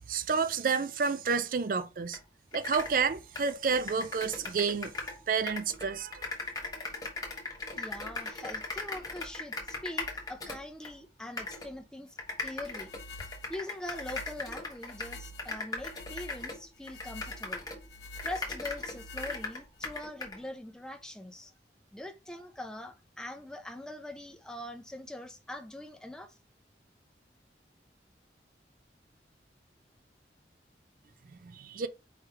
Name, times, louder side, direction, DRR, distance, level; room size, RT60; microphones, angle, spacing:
voice 1, 0.1-2.2 2.5-4.9 5.3-6.3 31.3-31.9, right 5 dB, 50° right, 0.4 m, -30 dB
sound 1, 2.1-2.2 2.5-5.2 5.5-10.9 11.4-11.7 12.2-17.9 18.2-20.4, left 3 dB, 20° left, 1.1 m, -38 dB
voice 2, 7.8-12.2 12.4-17.7 18.2-21.5 21.9-26.4, left 1 dB, 5° left, 0.5 m, -43 dB
sound 2, 12.8-19.8, left 1 dB, 70° left, 0.5 m, -48 dB
4.7 x 3.2 x 3.3 m
head